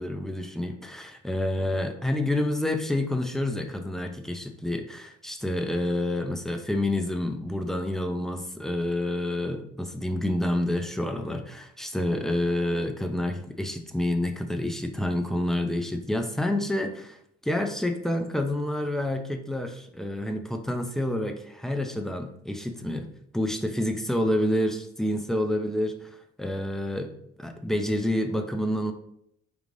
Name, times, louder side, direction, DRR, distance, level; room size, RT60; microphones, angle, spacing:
voice 1, 0.0-17.2 17.4-23.1 23.3-28.9, left 1 dB, ahead, 5 dB, 0.5 m, -28 dB
5.3 x 2.4 x 3.2 m, 0.72 s
cardioid pair, 90°, 30 cm